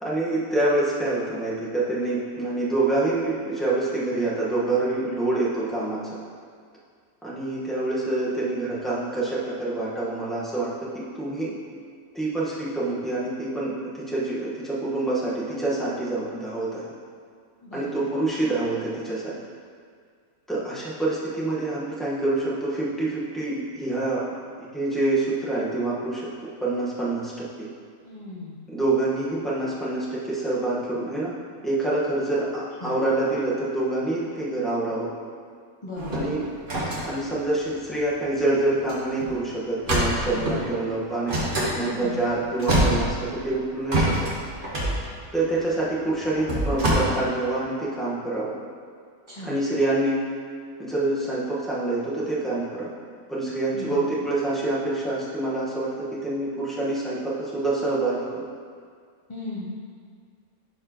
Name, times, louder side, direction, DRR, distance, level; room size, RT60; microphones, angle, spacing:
voice 1, 0.0-6.2 7.2-11.5 12.1-16.8 17.7-19.3 20.5-24.2 24.7-27.5 28.7-31.3 31.6-35.1 36.1-36.5 37.0-41.4 41.7-44.0 45.3-48.5 49.4-50.2 50.8-52.9 53.3-58.4, right 2 dB, ahead, -8 dB, 1.3 m, -26 dB
voice 2, 17.6-18.1 28.0-28.7 32.8-33.0 35.8-36.3 41.8-42.3 49.3-49.6 53.7-54.2 59.3-59.7, left 2 dB, 30° left, -6 dB, 0.6 m, -37 dB
sound 1, 36.0-38.4 38.8-38.9 39.2-39.4 39.8-40.7 41.3-41.7 42.3-42.4 42.5-43.5 43.9-46.9, right 1 dB, 40° right, 1.5 m, -25 dB
11.0 x 4.7 x 3.0 m, 2.1 s
omnidirectional pair, 1.5 m